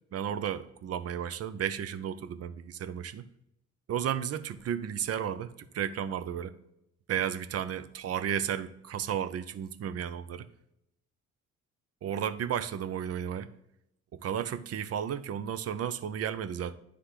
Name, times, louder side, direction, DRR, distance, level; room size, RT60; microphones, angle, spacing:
voice 1, 0.1-3.2 3.9-5.5 5.7-6.5 7.1-10.5 12.0-13.5 14.1-16.7, right 9 dB, 55° right, 14 dB, 0.6 m, -33 dB
9.7 x 3.4 x 5.7 m, 0.82 s
cardioid pair, 90°, 30 cm